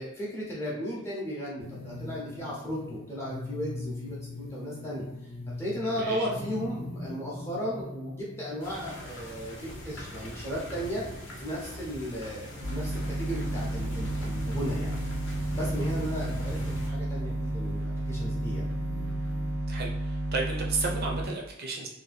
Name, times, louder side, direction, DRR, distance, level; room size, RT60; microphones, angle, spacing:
voice 1, 0.0-5.0 5.5-11.0 11.4-14.9 15.5-18.6, equal, 10° left, -5 dB, 0.6 m, -35 dB
sound 1, 1.6-19.6, left 2 dB, 85° left, 0.7 m, -43 dB
voice 2, 5.9-6.3 19.7-21.9, right 3 dB, 45° right, -1 dB, 0.5 m, -33 dB
sound 2, 8.6-16.9, equal, 55° left, 0.7 m, -42 dB
sound 3, 12.6-21.3, right 1 dB, 85° right, 0.8 m, -32 dB
2.7 x 2.2 x 3.3 m, 0.93 s
head